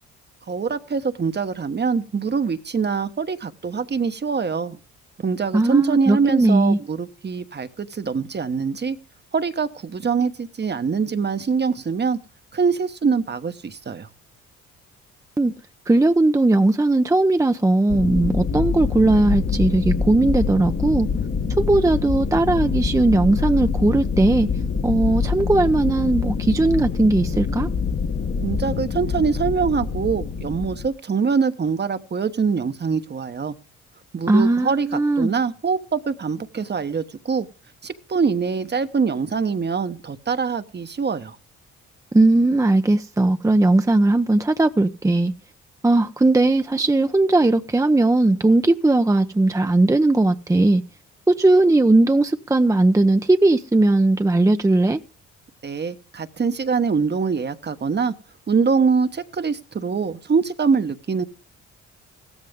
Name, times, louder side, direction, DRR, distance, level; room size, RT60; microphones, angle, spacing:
voice 1, 0.5-4.8 5.2-9.0 9.3-12.2 12.5-14.1 28.4-33.5 34.1-37.5 37.8-41.4 55.6-58.1 58.5-61.2, right 5 dB, 35° right, 1.2 m, -23 dB
voice 2, 5.5-6.8 15.4-15.5 15.9-21.1 21.6-24.5 24.8-27.7 34.3-35.3 42.1-45.3 45.8-50.8 51.3-55.0, right 2 dB, 10° right, 0.8 m, -18 dB
sound 1, 17.9-30.9, left 5 dB, 45° left, 1.3 m, -25 dB
15.5 x 13.5 x 3.7 m
supercardioid pair, 65°, 29 cm